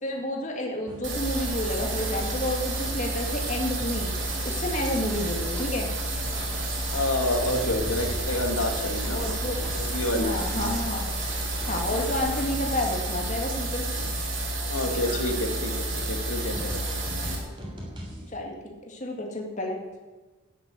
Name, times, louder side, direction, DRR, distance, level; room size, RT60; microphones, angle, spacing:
voice 1, 0.0-4.1 4.4-5.9 9.1-9.6 10.1-11.1 11.7-13.9 18.3-19.8, left 1 dB, 35° left, 1 dB, 2.0 m, -30 dB
sound 1, 0.9-1.2 1.6-2.6 2.9-4.7 5.1-5.7 6.0-6.9 7.2-10.0 10.3-13.4 13.8-14.4 14.7-18.3, equal, 25° right, 3.2 m, -43 dB
sound 2, 1.0-17.4, right 1 dB, 60° right, 3.4 m, -30 dB
Livestock farm animals working animals, 1.1-12.4, left 1 dB, 10° left, 2.2 m, -43 dB
voice 2, 6.9-9.2 9.7-10.4 14.7-16.7, left 1 dB, 80° left, 3 dB, 2.0 m, -28 dB
12.0 x 9.8 x 8.3 m, 1.2 s
head